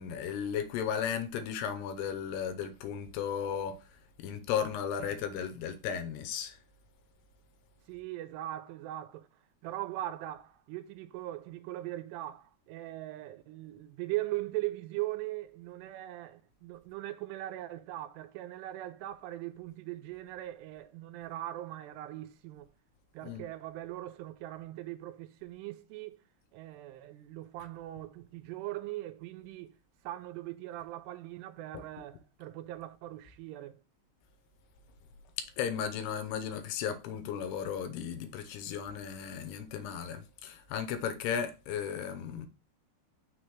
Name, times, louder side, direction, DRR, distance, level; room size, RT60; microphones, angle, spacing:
voice 1, 0.0-6.6 23.2-23.5 31.7-31.8 35.4-42.5, left 8 dB, 80° left, 2.6 m, -35 dB
voice 2, 7.9-9.3 9.6-22.7 23.1-26.2 26.5-29.7 30.0-33.8, right 15 dB, 85° right, 2.6 m, -40 dB
6.1 x 3.3 x 5.9 m
omnidirectional pair, 5.0 m